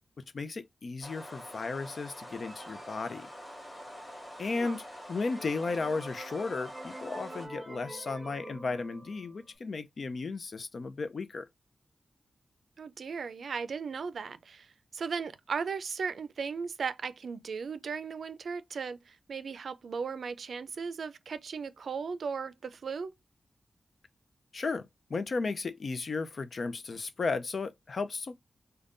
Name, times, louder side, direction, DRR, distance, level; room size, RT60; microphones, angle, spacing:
voice 1, 0.3-3.3 4.4-11.5 24.5-28.3, left 4 dB, 55° left, 0.4 m, -34 dB
A screeching Magpie in the top of a birch, 1.0-7.5, equal, 20° left, 1.7 m, -46 dB
sound 1, 2.4-4.0 4.6-4.7 5.0-9.6, right 1 dB, 15° right, 1.2 m, -47 dB
voice 2, 12.8-14.7 14.9-23.1, right 5 dB, 75° right, 0.4 m, -36 dB
5.1 x 2.2 x 2.5 m
wide cardioid pair, 155°, 0 cm